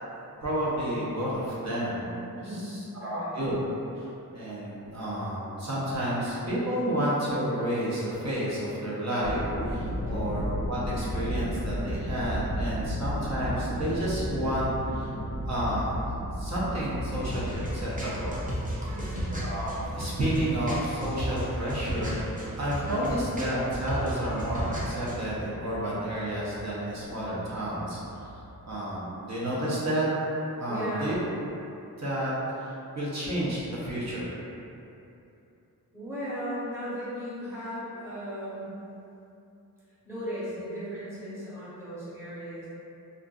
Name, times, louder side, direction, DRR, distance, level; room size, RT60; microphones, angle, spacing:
voice 1, 0.4-2.1 2.5-3.6 4.0-4.1 4.3-9.4 9.7-15.1 15.5-15.9 16.4-18.4 19.4-22.2 22.6-28.0 28.7-30.1 30.6-31.2 32.0-32.3 32.6-34.3, right 1 dB, 50° right, -8 dB, 0.8 m, -30 dB
voice 2, 2.3-3.5 9.9-10.4 18.8-19.3 30.7-31.2 35.9-38.8 40.0-42.7, equal, 5° right, -12 dB, 1.1 m, -37 dB
sound 1, 9.1-28.7, equal, 35° left, 0.5 m, -35 dB
sound 2, 17.1-25.1, right 1 dB, 25° right, 0.5 m, -34 dB
2.5 x 2.4 x 2.3 m, 2.8 s
cardioid pair, 65°, 36 cm